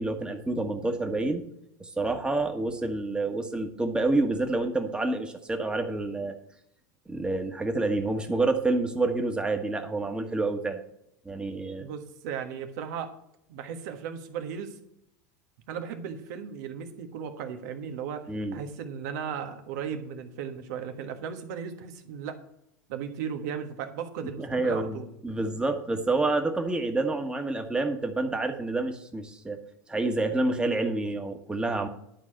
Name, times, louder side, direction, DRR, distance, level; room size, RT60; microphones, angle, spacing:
voice 1, 0.0-1.4 1.8-6.4 7.1-10.8 11.2-11.9 18.3-18.6 24.4-29.6 29.9-31.9, right 2 dB, 10° right, 4 dB, 1.5 m, -28 dB
voice 2, 11.8-13.1 13.5-14.7 15.7-22.4 22.9-25.1, right 7 dB, 70° right, 6 dB, 1.5 m, -36 dB
11.0 x 4.8 x 7.6 m, 0.78 s
hypercardioid pair, 95°, 10 cm